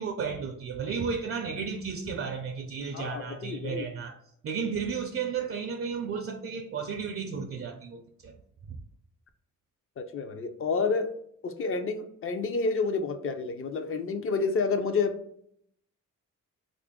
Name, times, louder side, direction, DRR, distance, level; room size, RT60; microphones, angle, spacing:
voice 1, 0.0-4.2 4.4-8.4 8.7-8.8, right 6 dB, 45° right, 0.4 m, -33 dB
voice 2, 2.9-3.8 10.0-11.1 11.4-15.2, left 4 dB, 45° left, 0.5 m, -29 dB
3.3 x 2.5 x 3.6 m
cardioid pair, 110°, 31 cm